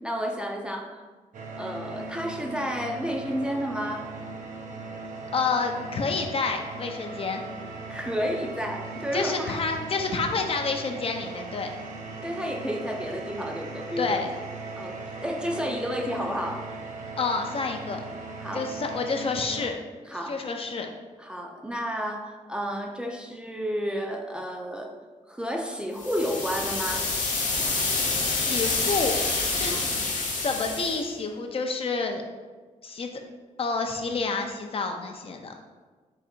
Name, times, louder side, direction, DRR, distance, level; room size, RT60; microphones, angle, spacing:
voice 1, 0.0-1.0 1.6-4.1 7.9-9.6 12.2-14.1 14.8-16.7 18.4-18.7 20.1-20.4 21.2-24.9 25.3-27.1 29.7-29.9, equal, 5° right, 1 dB, 0.4 m, -31 dB
sound 1, 1.3-19.7, right 3 dB, 75° right, 0.5 m, -39 dB
voice 2, 5.3-7.4 9.1-11.7 14.0-14.3 17.2-18.0 18.5-19.8 20.1-20.9 28.2-29.1 29.6-29.7 30.4-32.2 32.8-33.1 33.6-35.5, left 4 dB, 45° left, 4 dB, 0.5 m, -29 dB
sound 2, 26.0-31.0, left 3 dB, 85° left, 0.8 m, -27 dB
3.9 x 2.6 x 4.2 m, 1.4 s
cardioid pair, 110°, 13 cm